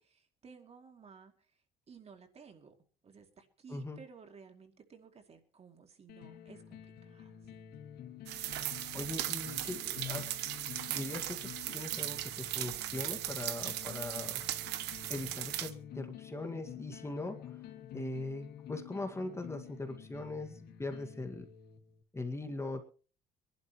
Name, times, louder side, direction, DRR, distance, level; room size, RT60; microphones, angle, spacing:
voice 1, 0.0-1.6 1.9-2.7 3.0-7.6, right 5 dB, 40° right, 5 dB, 2.6 m, -56 dB
sound 1, 6.1-22.0, left 9 dB, 70° left, 1.8 m, -49 dB
sound 2, 8.3-15.7, right 14 dB, 90° right, 1.2 m, -38 dB
voice 2, 8.9-10.4 10.9-14.4 15.1-17.5 17.9-21.5 22.1-22.8, left 2 dB, 15° left, 4 dB, 1.9 m, -40 dB
24.5 x 11.5 x 3.1 m, 0.39 s
cardioid pair, 110°, 17 cm